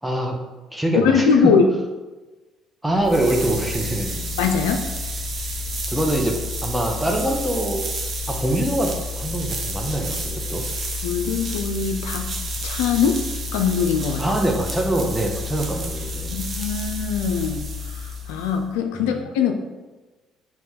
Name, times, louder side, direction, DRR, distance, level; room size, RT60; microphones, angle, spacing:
voice 1, 0.0-0.4 0.7-1.5 2.8-4.4 5.9-6.4 6.6-7.8 8.3-10.6 14.2-16.4 18.9-19.1, right 1 dB, 5° right, 1 dB, 0.9 m, -24 dB
voice 2, 0.9-1.6 4.4-4.8 11.0-12.4 12.6-13.2 13.5-14.2 16.3-19.5, left 6 dB, 80° left, 5 dB, 0.4 m, -22 dB
sound 1, 2.9-18.6, left 1 dB, 45° right, 0.7 m, -30 dB
4.1 x 2.9 x 3.7 m, 1.2 s
hypercardioid pair, 60°, 0 cm